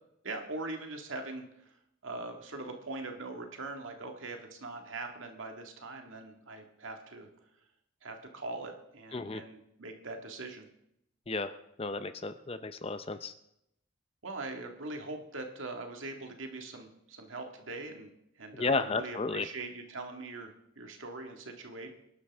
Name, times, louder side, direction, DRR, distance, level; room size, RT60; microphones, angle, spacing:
voice 1, 0.2-7.3 8.0-10.7 14.2-21.9, right 2 dB, 80° right, 3 dB, 1.8 m, -42 dB
voice 2, 11.8-13.3 18.5-19.5, left 3 dB, 30° left, 11 dB, 0.6 m, -33 dB
25.0 x 11.5 x 3.5 m, 0.78 s
head